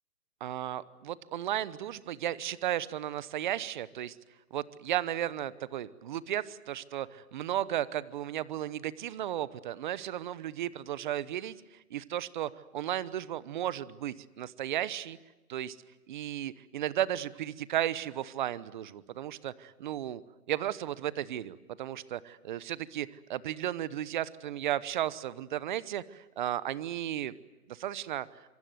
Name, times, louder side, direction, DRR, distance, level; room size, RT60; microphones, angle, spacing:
voice 1, 0.4-4.2 4.5-11.5 11.9-15.2 15.5-15.8 16.1-20.2 20.5-27.4 27.7-28.3, right 12 dB, 35° right, 17 dB, 0.9 m, -34 dB
26.5 x 24.5 x 7.9 m, 1.1 s
hypercardioid pair, 155°, 44 cm